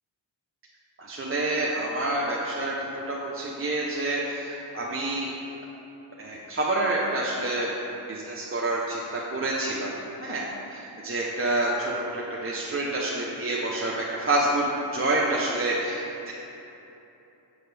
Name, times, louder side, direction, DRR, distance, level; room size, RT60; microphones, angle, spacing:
voice 1, 1.0-5.3 6.2-7.7 8.1-9.9 10.2-16.0, right 2 dB, 30° right, -5 dB, 0.7 m, -28 dB
6.8 x 6.5 x 3.3 m, 2.9 s
cardioid pair, 75°, 44 cm